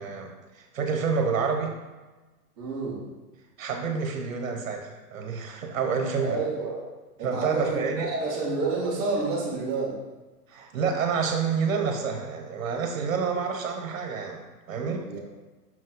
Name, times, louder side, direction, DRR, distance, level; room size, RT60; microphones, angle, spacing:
voice 1, 0.0-1.7 3.6-6.4 7.2-8.1 10.5-15.2, right 5 dB, 55° right, 3 dB, 1.2 m, -28 dB
voice 2, 2.6-3.1 6.2-6.9 7.2-10.0 15.0-15.2, right 3 dB, 10° right, -11 dB, 0.6 m, -29 dB
5.9 x 5.1 x 3.9 m, 1.2 s
hypercardioid pair, 170°, 47 cm